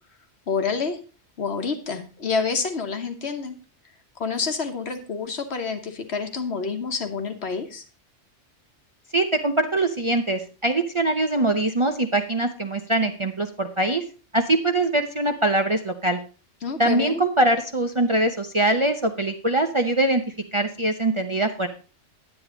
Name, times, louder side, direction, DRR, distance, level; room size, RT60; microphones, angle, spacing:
voice 1, 0.5-1.0 1.4-3.5 4.2-7.8 16.6-17.2, left 5 dB, 60° left, 6 dB, 1.5 m, -28 dB
voice 2, 9.1-14.0 14.3-16.2 16.8-20.2 20.5-21.7, right 2 dB, 35° right, 6 dB, 0.6 m, -22 dB
9.9 x 9.0 x 3.9 m, 0.35 s
omnidirectional pair, 1.2 m